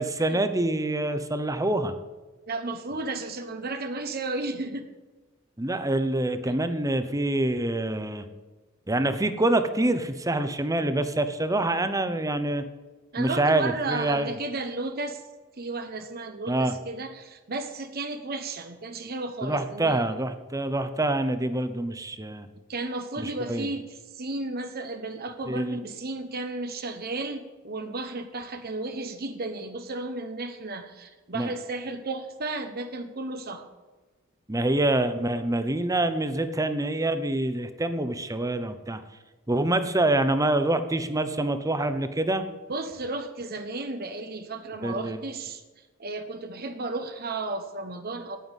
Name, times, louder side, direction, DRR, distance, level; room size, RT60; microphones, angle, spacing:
voice 1, 0.0-1.9 5.6-8.3 8.9-12.6 13.2-14.3 16.5-16.7 19.4-22.5 23.2-23.7 25.5-25.8 31.3-31.5 34.5-39.0 39.5-42.5 44.8-45.2, right 2 dB, 15° right, 10 dB, 0.9 m, -26 dB
voice 2, 2.5-4.9 6.4-6.5 13.1-15.2 15.6-20.0 22.7-33.7 42.7-45.6 46.0-48.4, right 2 dB, 50° right, 7 dB, 1.0 m, -33 dB
9.3 x 9.2 x 8.1 m, 1.2 s
head